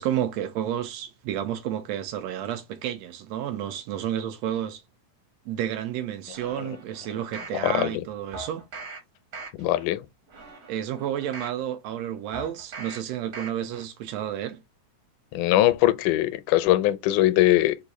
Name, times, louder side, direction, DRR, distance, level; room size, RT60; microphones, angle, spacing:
voice 1, 0.0-4.8 5.5-8.6 10.7-14.6, right 10 dB, 85° right, 1.5 m, -31 dB
sound 1, 6.3-7.6 8.3-9.0 9.3-9.8 10.3-11.6 12.3-13.0 13.3-13.8 14.2-14.3, right 3 dB, 55° right, 1.1 m, -40 dB
voice 2, 7.6-8.0 9.6-10.0 15.3-17.8, left 15 dB, 85° left, 2.0 m, -21 dB
4.7 x 2.6 x 4.0 m
omnidirectional pair, 3.5 m